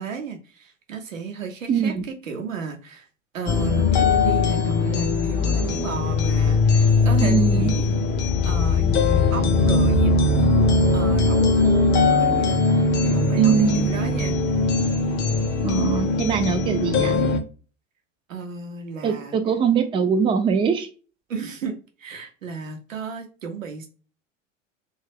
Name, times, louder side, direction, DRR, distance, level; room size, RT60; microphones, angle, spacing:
voice 1, 0.0-3.1 3.3-7.9 8.4-14.4 18.3-19.3 21.3-23.9, right 5 dB, 80° right, 4 dB, 0.8 m, -34 dB
voice 2, 1.7-2.0 7.2-7.7 13.4-13.9 15.6-17.2 19.0-20.9, right 6 dB, 15° right, 7 dB, 0.3 m, -22 dB
sound 1, 3.5-17.4, left 3 dB, 30° left, 0.6 m, -20 dB
2.7 x 2.3 x 3.3 m, 0.37 s
figure-of-eight pair, 85°, 38 cm